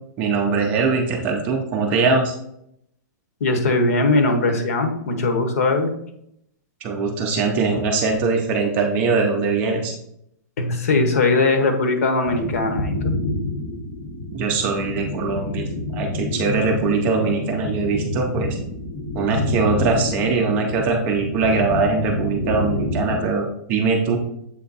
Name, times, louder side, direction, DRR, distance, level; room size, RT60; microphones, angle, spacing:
voice 1, 0.2-2.3 6.8-9.9 14.3-15.6 15.9-18.6 19.1-24.2, right 4 dB, 15° right, 1 dB, 0.5 m, -21 dB
voice 2, 3.4-5.9 10.6-13.1, left 3 dB, 50° left, 6 dB, 1.0 m, -20 dB
sound 1, 12.2-23.3, left 2 dB, 20° left, 0.8 m, -28 dB
7.5 x 3.4 x 4.0 m, 0.75 s
hypercardioid pair, 180°, 10 cm